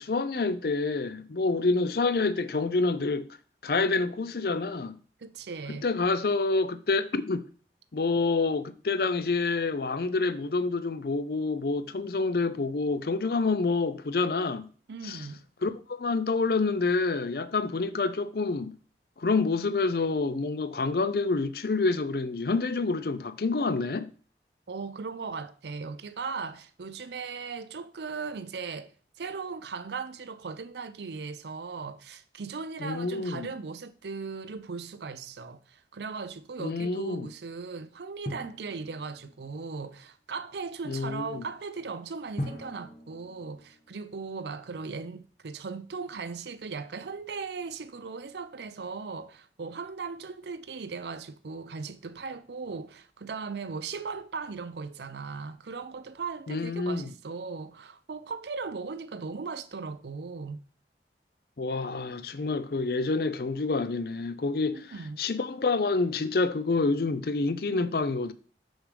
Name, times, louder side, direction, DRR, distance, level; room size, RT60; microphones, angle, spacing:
voice 1, 0.0-3.3 3.6-5.0 5.8-7.4 7.9-14.7 15.0-15.2 15.6-18.7 19.2-24.1 32.8-33.5 36.6-37.3 40.9-41.4 56.5-57.1 61.6-68.3, left 3 dB, 55° left, 0.5 m, -27 dB
voice 2, 5.2-5.9 14.9-15.4 24.7-28.9 29.2-60.6 64.7-65.2, right 4 dB, 75° right, 0.5 m, -38 dB
Drum, 38.3-39.8 42.4-44.5, left 1 dB, 40° left, 1.2 m, -40 dB
6.3 x 6.3 x 3.3 m
head